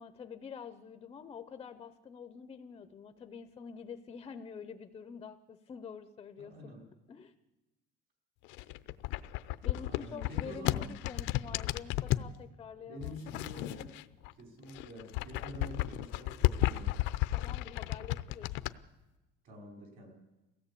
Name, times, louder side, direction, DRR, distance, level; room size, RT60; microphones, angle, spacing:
voice 1, 0.0-6.7 7.1-7.3 9.6-13.1 17.3-18.5, left 6 dB, 25° left, 11 dB, 0.7 m, -47 dB
voice 2, 6.4-6.9 9.8-10.9 12.9-14.0 14.4-17.0 19.4-20.1, equal, 50° right, 2 dB, 5.0 m, -47 dB
sound 1, 8.4-12.3 13.0-14.3 14.6-18.7, left 16 dB, 70° left, 0.7 m, -33 dB
22.5 x 16.5 x 8.4 m, 1.1 s
cardioid pair, 175°, 20 cm